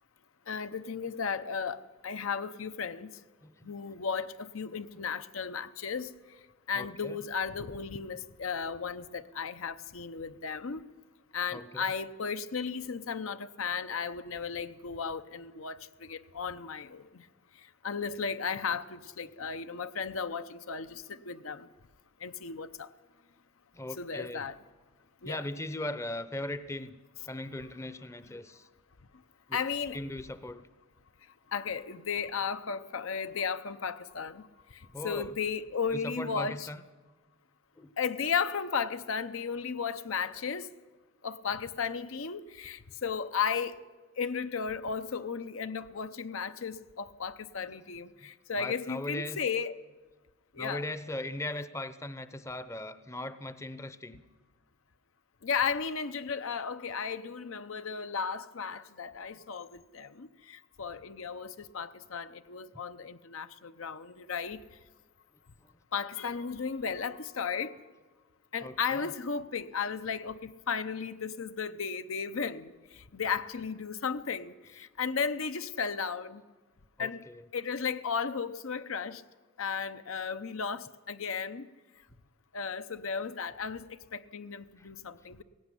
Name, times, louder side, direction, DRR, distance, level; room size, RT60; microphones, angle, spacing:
voice 1, 0.5-3.1 3.6-6.1 6.7-10.8 11.3-17.3 17.8-21.7 22.2-22.9 24.0-24.6 25.2-25.4 29.5-30.0 31.5-34.5 34.7-36.7 38.0-40.7 41.2-43.8 44.2-49.8 50.5-50.8 55.4-64.6 65.9-67.8 68.5-76.4 77.0-77.2 77.5-79.2 79.6-81.7 82.5-85.4, left 6 dB, 75° left, 0.8 m, -35 dB
voice 2, 3.4-3.7 5.0-5.1 6.7-7.2 11.5-11.8 23.7-24.5 25.2-27.0 27.3-28.7 29.5-29.6 29.9-30.6 34.9-35.4 35.9-36.8 37.8-37.9 47.5-48.3 48.5-49.4 50.6-54.2 59.3-59.4 62.7-62.8 65.6-65.7 68.6-69.1 77.0-77.5 84.8-84.9, left 1 dB, 15° left, 0.7 m, -39 dB
16.5 x 16.5 x 9.8 m
head